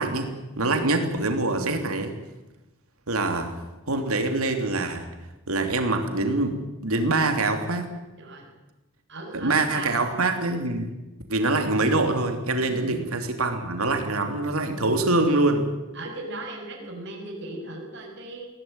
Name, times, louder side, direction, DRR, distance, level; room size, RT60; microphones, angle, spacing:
voice 1, 0.0-2.1 3.1-3.5 3.9-5.1 5.5-7.9 9.3-10.9 11.3-15.6, right 2 dB, 85° right, 6 dB, 3.1 m, -24 dB
voice 2, 0.6-0.9 1.5-1.8 8.2-8.5 9.1-9.9 12.6-13.2 15.9-18.5, right 1 dB, 55° right, 0 dB, 6.4 m, -37 dB
22.0 x 17.0 x 8.9 m, 1.0 s
head